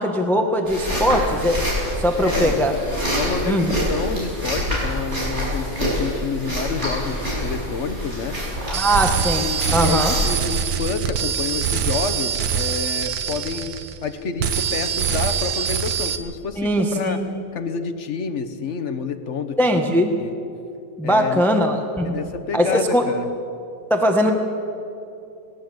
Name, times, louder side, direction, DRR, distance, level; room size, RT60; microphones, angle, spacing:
voice 1, 0.0-1.6 2.0-2.7 3.4-3.7 8.7-10.1 16.6-17.3 19.6-20.1 21.0-22.2 22.5-23.0 23.9-24.3, equal, ahead, 4 dB, 1.2 m, -20 dB
sound 1, 0.7-10.3, equal, 45° right, 6.4 m, -26 dB
voice 2, 2.2-2.6 3.2-8.4 9.2-17.2 17.5-19.6 20.2-20.3 21.0-21.4 22.0-23.3, left 5 dB, 50° left, 9 dB, 1.4 m, -29 dB
sound 2, 8.7-14.1 14.4-16.2, right 8 dB, 85° right, 1.6 m, -24 dB
19.5 x 19.0 x 8.0 m, 2.7 s
omnidirectional pair, 1.7 m